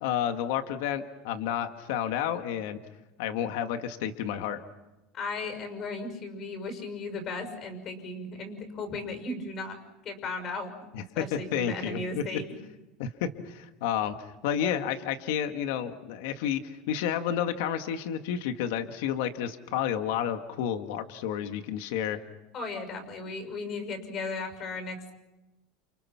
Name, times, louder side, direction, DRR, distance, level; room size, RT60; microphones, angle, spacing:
voice 1, 0.0-2.8 3.2-4.6 10.9-12.2 13.0-22.2, left 9 dB, 75° left, 7 dB, 1.9 m, -31 dB
voice 2, 5.1-9.8 10.0-10.7 11.1-12.4 22.5-25.1, left 3 dB, 35° left, 7 dB, 6.1 m, -36 dB
29.5 x 29.5 x 6.0 m, 1.0 s
supercardioid pair, 145°, 0 cm